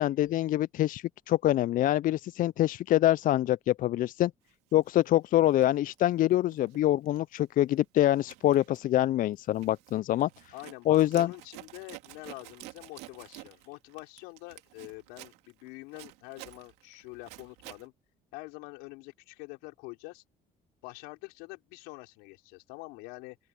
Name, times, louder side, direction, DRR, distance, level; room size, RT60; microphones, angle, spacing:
voice 1, 0.0-4.3 4.7-10.3 10.9-11.3, left 14 dB, 55° left, 0.4 m, -25 dB
Zipper (clothing), 4.7-4.9 5.4-6.8 7.1-7.4 7.7-17.9, right 20 dB, 85° right, 2.6 m, -50 dB
voice 2, 10.5-17.9 18.3-20.2 20.8-23.4, left 25 dB, 85° left, 5.5 m, -45 dB
open air
supercardioid pair, 70°, 17 cm